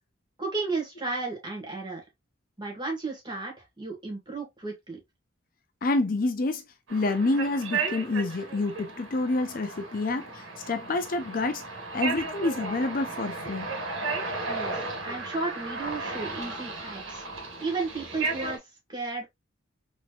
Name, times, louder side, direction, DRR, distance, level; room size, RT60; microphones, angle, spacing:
voice 1, 0.4-2.0 2.6-5.0 14.5-14.8 15.0-17.2 17.6-18.6 18.9-19.2, right 3 dB, 25° right, 1.5 m, -33 dB
voice 2, 5.8-6.6 6.9-11.6 11.9-13.7, left 2 dB, 45° left, 0.5 m, -28 dB
sound 1, 6.9-18.6, right 3 dB, 85° right, 1.4 m, -35 dB
4.2 x 3.0 x 2.3 m
head